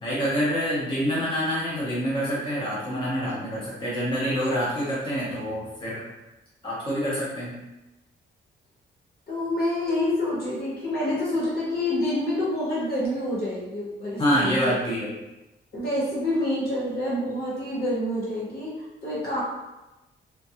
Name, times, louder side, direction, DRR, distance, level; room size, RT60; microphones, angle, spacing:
voice 1, 0.0-6.0 6.6-7.6 14.2-15.1, equal, 25° left, -8 dB, 0.6 m, -26 dB
voice 2, 9.3-14.8 15.7-18.7 19.0-19.4, left 1 dB, 50° left, -7 dB, 1.0 m, -27 dB
2.3 x 2.2 x 2.7 m, 1.0 s
wide cardioid pair, 175°, 20 cm